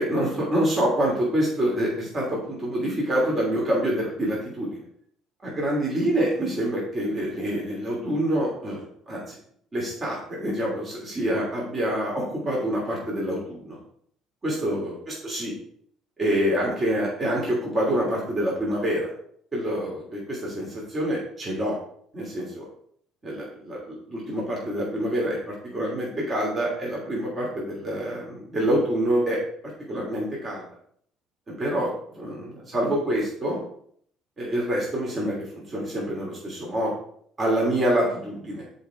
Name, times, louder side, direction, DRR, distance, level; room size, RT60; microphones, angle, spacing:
voice 1, 0.0-4.8 5.4-9.4 9.7-13.8 14.4-15.5 16.2-19.1 19.5-21.8 22.1-22.7 23.2-25.4 25.7-29.4 29.9-30.6 31.5-33.6 34.4-36.9 37.4-38.6, right 1 dB, 35° right, -4 dB, 2.8 m, -26 dB
7.1 x 4.4 x 4.4 m, 0.63 s
hypercardioid pair, 60°, 0 cm